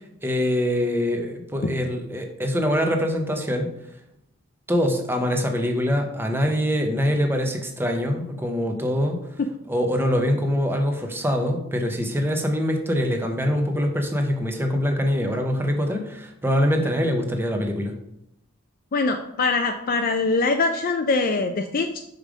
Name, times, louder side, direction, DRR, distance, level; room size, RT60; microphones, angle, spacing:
voice 1, 0.0-3.7 4.7-9.2 9.7-17.9, equal, 10° right, 4 dB, 0.9 m, -24 dB
voice 2, 18.9-22.0, left 3 dB, 45° left, 6 dB, 0.4 m, -23 dB
5.4 x 5.0 x 5.0 m, 0.80 s
head